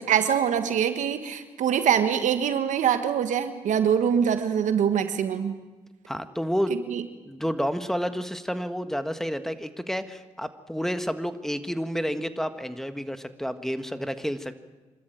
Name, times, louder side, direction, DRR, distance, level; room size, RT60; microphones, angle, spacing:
voice 1, 0.0-5.6 6.7-7.0, right 8 dB, 80° right, 9 dB, 1.5 m, -24 dB
voice 2, 6.1-6.7 7.2-14.6, equal, 5° left, 10 dB, 1.7 m, -30 dB
25.5 x 13.5 x 9.1 m, 1.2 s
supercardioid pair, 55°, 13 cm